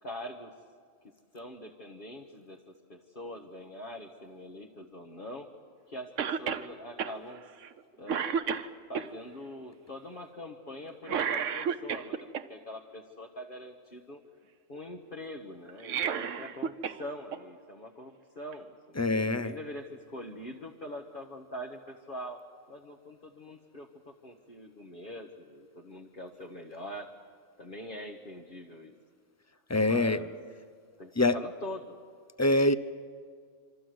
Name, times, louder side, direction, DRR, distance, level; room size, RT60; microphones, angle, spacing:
voice 1, 0.0-0.5 1.3-5.5 5.9-7.4 8.0-8.3 8.9-14.2 14.7-22.4 22.7-27.1 27.6-28.9 29.8-30.5 31.0-32.0, equal, 40° left, 0 dB, 1.6 m, -43 dB
Cough, 6.2-6.7 7.0-7.1 7.6-7.8 8.1-9.1 11.1-12.4 15.7-17.0 17.3-17.4 18.5-18.6, right 7 dB, 70° right, 1.2 m, -31 dB
voice 2, 19.0-19.5 29.7-30.2 31.2-31.4 32.4-32.7, left 2 dB, 20° left, 13 dB, 0.5 m, -24 dB
26.5 x 25.5 x 7.9 m, 2.1 s
omnidirectional pair, 1.4 m